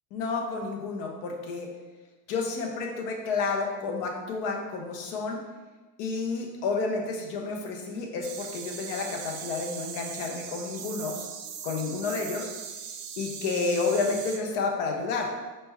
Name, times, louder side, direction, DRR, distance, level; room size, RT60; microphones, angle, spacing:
voice 1, 0.1-1.7 2.3-5.4 6.0-11.2 11.6-12.5 13.2-15.3, left 4 dB, 35° left, 1 dB, 0.5 m, -30 dB
sound 1, 8.2-14.4, right 7 dB, 80° right, 0.7 m, -39 dB
4.4 x 3.1 x 3.4 m, 1.2 s
cardioid pair, 175°, 43 cm